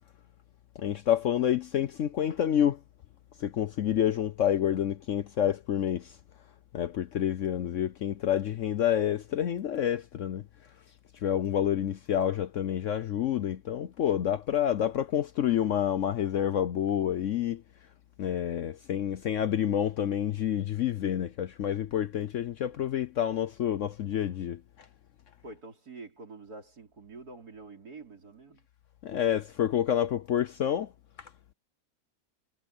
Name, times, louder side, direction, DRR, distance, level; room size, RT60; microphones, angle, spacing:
voice 1, 0.8-2.8 3.4-6.1 6.7-10.4 11.2-17.6 18.2-24.6 29.0-30.9 31.2-31.3, left 10 dB, 60° left, 0.9 m, -28 dB
voice 2, 25.4-28.6, right 3 dB, 70° right, 4.5 m, -47 dB
omnidirectional pair, 1.7 m